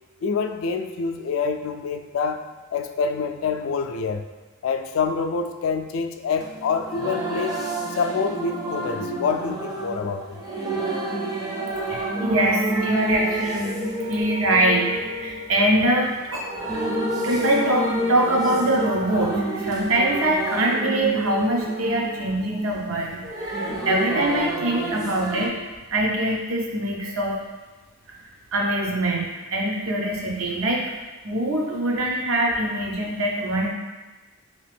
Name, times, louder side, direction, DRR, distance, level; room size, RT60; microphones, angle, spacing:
voice 1, 0.2-4.2 4.6-7.6 7.9-10.4, left 5 dB, 75° left, 6 dB, 0.3 m, -26 dB
sound 1, 6.4-25.5, right 1 dB, 20° right, 0.4 m, -29 dB
voice 2, 11.9-16.5 17.2-27.3 28.5-30.9 31.2-33.7, right 1 dB, 85° right, -2 dB, 0.7 m, -23 dB
3.3 x 2.9 x 3.3 m, 1.3 s
head